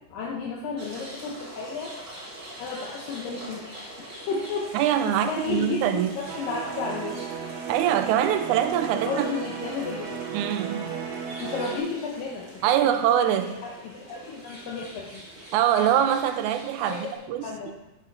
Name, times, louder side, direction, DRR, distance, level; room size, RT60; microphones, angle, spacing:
voice 1, 0.1-1.9 2.6-3.6 4.3-7.3 8.9-10.1 11.4-13.0 13.3-15.3 16.9-17.0 17.4-17.7, left 4 dB, 75° left, 2.7 m, -33 dB
sound 1, 0.8-17.1, right 1 dB, 30° right, 2.6 m, -44 dB
voice 2, 4.7-6.1 7.7-9.3 10.3-10.9 12.6-13.6 15.5-17.7, right 10 dB, 85° right, 1.7 m, -24 dB
sound 2, 6.3-11.8, right 6 dB, 65° right, 1.8 m, -34 dB
8.5 x 6.8 x 5.4 m
omnidirectional pair, 4.2 m